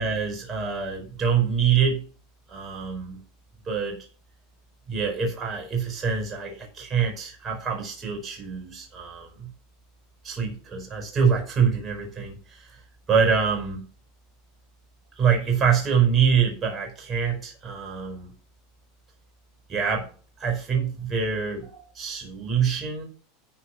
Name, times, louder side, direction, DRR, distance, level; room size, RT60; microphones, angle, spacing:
voice 1, 0.0-2.0 2.5-3.2 3.6-4.0 4.9-9.5 10.2-12.8 13.1-13.9 15.2-18.3 19.7-20.1 20.4-23.0, right 6 dB, 30° right, 2 dB, 4.9 m, -25 dB
13.5 x 4.9 x 5.9 m, 0.38 s
hypercardioid pair, 100°, 0 cm